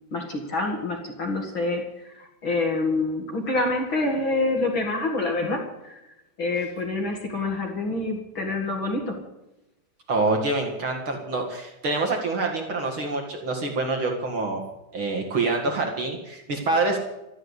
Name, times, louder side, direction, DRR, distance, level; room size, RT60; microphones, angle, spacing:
voice 1, 0.1-9.2, left 2 dB, 45° left, 2 dB, 1.6 m, -27 dB
voice 2, 10.1-14.6 14.9-17.0, right 3 dB, 60° right, 2 dB, 1.3 m, -26 dB
13.5 x 12.5 x 8.1 m, 0.95 s
omnidirectional pair, 5.4 m